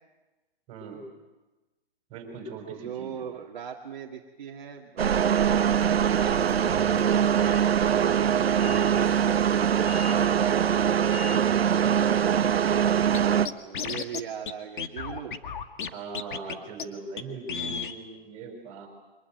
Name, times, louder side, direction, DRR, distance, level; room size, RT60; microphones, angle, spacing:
voice 1, 0.7-1.1 2.1-3.2 9.9-11.2 15.9-18.9, right 4 dB, 20° right, 2 dB, 6.2 m, -40 dB
voice 2, 2.7-7.3 7.9-9.4 12.6-15.4, right 8 dB, 50° right, 0 dB, 2.1 m, -39 dB
sound 1, 5.0-13.5, right 8 dB, 85° right, 1.1 m, -23 dB
Train / Sliding door, 5.3-11.8, left 3 dB, 35° left, 3.4 m, -44 dB
Scratching (performance technique), 13.1-13.2 13.5-14.2 14.5-14.6 14.8-15.9 16.1-16.5 16.8-16.9 17.2-17.3 17.5-17.9, left 6 dB, 55° left, 1.9 m, -33 dB
24.5 x 20.5 x 9.3 m, 1.1 s
hypercardioid pair, 165°, 30 cm